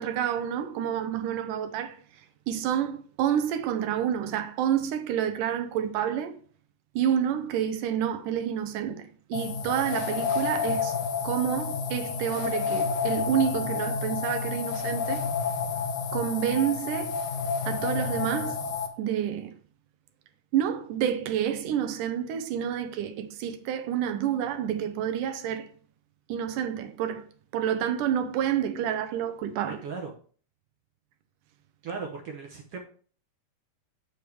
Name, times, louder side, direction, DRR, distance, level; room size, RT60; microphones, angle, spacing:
voice 1, 0.0-2.0 2.5-6.4 7.0-11.0 11.2-15.3 16.1-17.1 17.7-18.6 19.0-19.6 20.5-25.7 26.3-27.2 27.5-29.8, right 9 dB, 90° right, 2.4 m, -29 dB
sound 1, 9.3-18.9, left 5 dB, 70° left, 2.1 m, -30 dB
voice 2, 29.7-30.1 31.8-32.8, right 5 dB, 70° right, 1.4 m, -37 dB
7.0 x 6.6 x 3.3 m
omnidirectional pair, 3.6 m